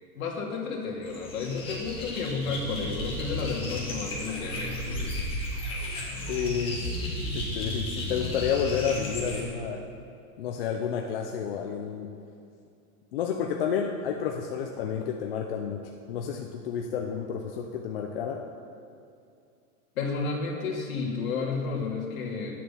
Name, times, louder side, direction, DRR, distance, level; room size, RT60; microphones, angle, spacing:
voice 1, 0.1-5.1 20.0-22.6, left 4 dB, 65° left, -1 dB, 2.5 m, -32 dB
sound 1, 1.0-9.4, left 1 dB, 10° left, 1.7 m, -33 dB
voice 2, 6.3-6.9 7.3-9.8 10.4-12.1 13.1-15.8 16.1-18.4, left 7 dB, 40° left, 2 dB, 0.6 m, -30 dB
10.5 x 7.5 x 6.9 m, 2.5 s
supercardioid pair, 170°, 45 cm